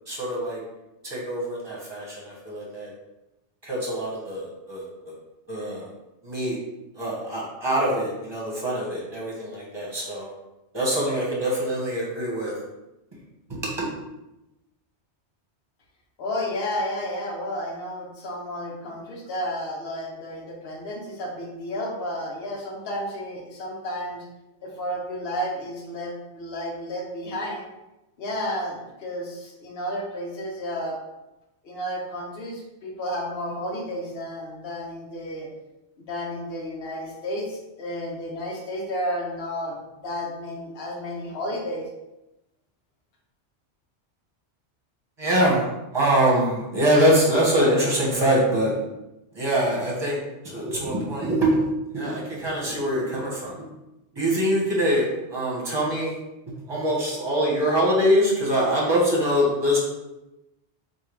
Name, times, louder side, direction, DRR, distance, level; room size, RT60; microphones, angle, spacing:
voice 1, 0.1-0.6 1.0-2.9 3.6-4.8 5.5-5.9 6.2-6.6 6.9-10.3 10.7-12.5 13.5-13.9 45.2-45.7 45.9-48.7 49.3-50.2 50.4-51.7 51.9-53.6 54.2-55.0 55.3-56.2 56.7-59.8, equal, 25° right, -5 dB, 1.3 m, -23 dB
voice 2, 16.2-24.2 24.6-27.6 28.2-31.0 31.6-35.5 36.0-41.9, equal, 60° left, -2 dB, 1.1 m, -32 dB
3.5 x 2.7 x 4.6 m, 0.96 s
omnidirectional pair, 1.2 m